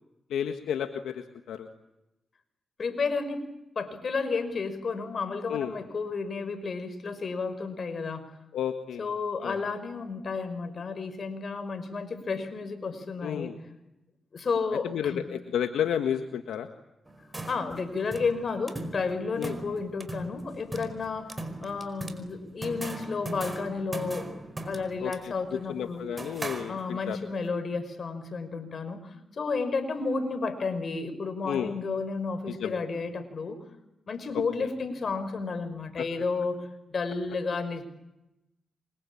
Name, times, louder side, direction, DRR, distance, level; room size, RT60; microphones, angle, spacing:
voice 1, 0.3-1.7 5.5-5.7 8.5-9.1 9.4-9.6 13.2-13.6 14.8-16.7 19.3-19.6 25.0-27.2 31.4-31.7 32.5-32.8 34.3-34.7 36.0-36.1, left 9 dB, 85° left, 6 dB, 1.6 m, -32 dB
voice 2, 2.8-3.4 3.8-8.3 9.0-13.5 14.3-15.2 17.5-21.3 21.6-26.1 26.7-33.6 34.1-37.9, left 4 dB, 55° left, 10 dB, 5.5 m, -32 dB
sound 1, 17.1-27.2, right 2 dB, 25° right, 5.0 m, -40 dB
27.5 x 24.5 x 8.7 m, 0.94 s
supercardioid pair, 50°, 0 cm